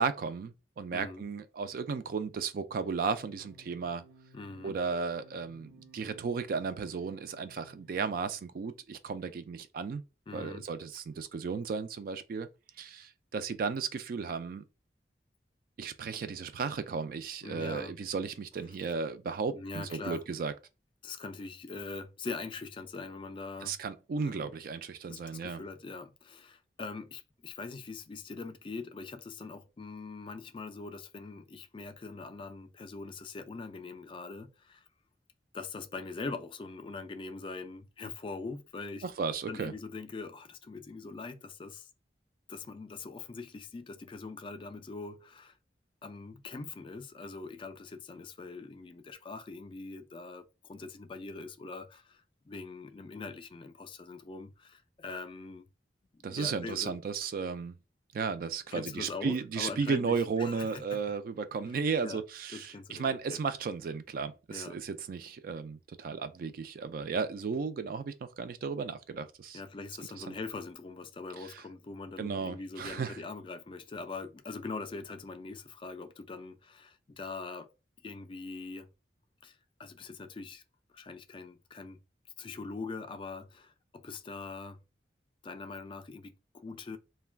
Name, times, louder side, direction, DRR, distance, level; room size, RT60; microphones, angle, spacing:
voice 1, 0.0-4.1 4.6-10.0 10.3-12.5 12.8-14.6 15.8-20.5 23.6-25.6 39.0-39.7 56.2-57.7 58.1-69.6 70.3-70.4 71.5-71.6 72.2-73.2, right 5 dB, 55° right, 0.3 m, -34 dB
voice 2, 0.9-1.2 4.3-4.8 10.3-10.7 17.4-18.0 19.5-20.2 21.0-23.8 24.2-24.5 25.0-34.9 35.5-39.0 39.5-41.9 42.5-45.6 46.0-55.6 56.1-57.0 58.7-61.0 62.0-62.2 62.5-63.4 64.5-64.8 69.5-77.7 78.0-78.9 79.4-80.6 80.9-82.0 82.4-84.8 85.4-87.0, left 4 dB, 30° left, 0.3 m, -42 dB
sound 1, 2.8-8.5, right 2 dB, 90° right, 0.6 m, -58 dB
2.3 x 2.2 x 3.3 m
head